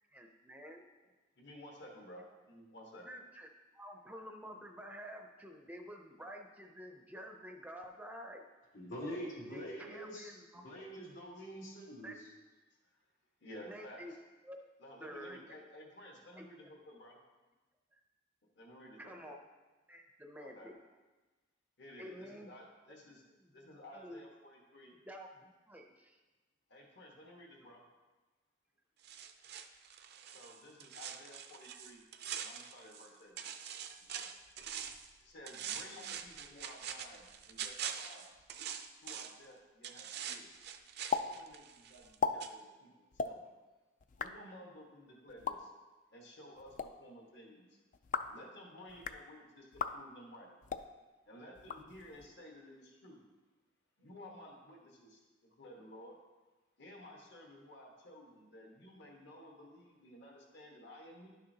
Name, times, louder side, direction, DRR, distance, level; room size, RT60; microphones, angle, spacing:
voice 1, 0.1-0.8 3.1-3.5 3.7-8.4 9.5-10.6 12.0-12.1 13.6-14.1 14.4-14.7 15.0-15.4 16.4-16.7 17.9-18.0 19.0-19.4 19.9-20.8 22.0-22.5 23.4-23.5 23.9-24.3 24.9-26.2 48.9-49.0, equal, 10° right, 3 dB, 0.5 m, -49 dB
voice 2, 1.4-3.1 11.4-11.5 13.4-14.0 14.8-17.2 18.5-19.3 20.4-20.7 21.8-23.2 23.5-24.9 26.7-27.8 30.3-32.0 32.3-33.4 34.1-34.3 35.2-38.4 39.0-40.7 41.1-43.5 44.2-45.7 46.1-47.8 48.3-50.5 51.2-53.2 54.0-55.2 55.5-56.2 56.8-61.3, left 1 dB, 60° left, 0 dB, 1.4 m, -54 dB
voice 3, 8.7-10.3 10.5-12.1, equal, 85° left, -5 dB, 2.4 m, -44 dB
sound 1, 29.0-33.1 33.4-35.1 35.5-39.4 39.8-42.1 42.4-42.5, right 8 dB, 55° right, 0.5 m, -44 dB
sound 2, 41.1-41.3 41.5-41.6 42.0-42.3 43.1-43.3 44.0-44.3 45.3-45.6 46.6-46.9 47.9-48.4 48.9-49.2 49.7-49.9 50.6-50.9 51.6-52.3, left 6 dB, 40° left, 0.3 m, -36 dB
11.5 x 6.6 x 2.8 m, 1.2 s
head